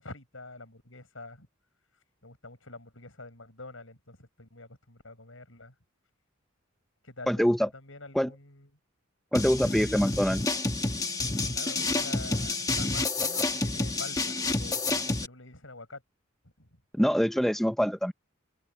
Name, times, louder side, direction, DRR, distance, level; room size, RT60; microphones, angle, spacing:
voice 1, 0.0-1.5 2.2-5.7 7.0-8.7 9.6-10.1 11.5-16.0 16.4-16.8, left 2 dB, 75° left, 7.9 m, -46 dB
voice 2, 7.3-7.7 8.1-8.3 9.3-10.6 16.9-18.1, equal, ahead, 0.6 m, -25 dB
sound 1, 9.3-15.3, left 2 dB, 20° left, 1.2 m, -29 dB
head